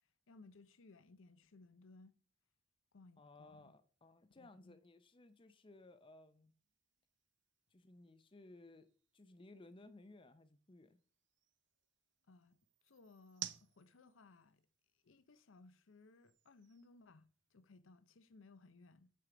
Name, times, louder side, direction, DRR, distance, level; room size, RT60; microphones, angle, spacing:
voice 1, 0.3-2.1 2.9-3.7 4.4-4.8 12.3-12.6 12.8-14.6 15.0-19.1, left 3 dB, 80° left, 0.6 m, -62 dB
voice 2, 3.2-6.5 7.7-8.9 9.1-11.0, left 2 dB, 25° left, 0.6 m, -60 dB
sound 1, 3.6-17.8, right 12 dB, 60° right, 0.5 m, -58 dB
7.8 x 4.9 x 3.8 m
head